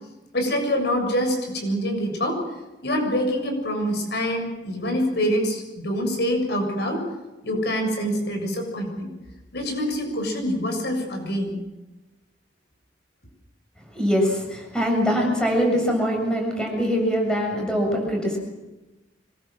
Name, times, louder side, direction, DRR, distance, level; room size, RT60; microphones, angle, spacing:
voice 1, 0.3-2.4 2.8-7.0 7.4-9.1 9.5-11.6, equal, 65° left, 3 dB, 7.1 m, -25 dB
voice 2, 13.9-18.4, equal, 5° left, 1 dB, 7.3 m, -23 dB
26.0 x 22.0 x 7.6 m, 1.1 s
head